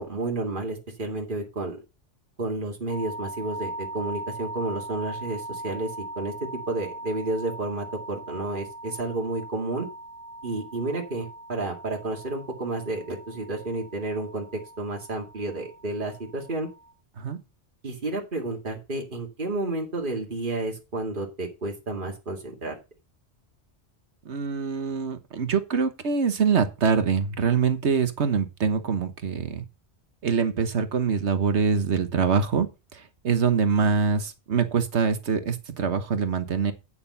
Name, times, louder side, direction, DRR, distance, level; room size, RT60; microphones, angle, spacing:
voice 1, 0.0-1.8 2.4-5.9 6.2-6.3 6.7-9.9 10.4-16.7 17.8-22.7, right 2 dB, 45° right, 2.4 m, -31 dB
sound 1, 2.9-16.9, right 1 dB, 10° right, 1.4 m, -40 dB
voice 2, 24.2-29.6 30.2-32.7 33.2-36.7, right 5 dB, 75° right, 1.5 m, -24 dB
9.0 x 6.7 x 5.5 m
omnidirectional pair, 1.2 m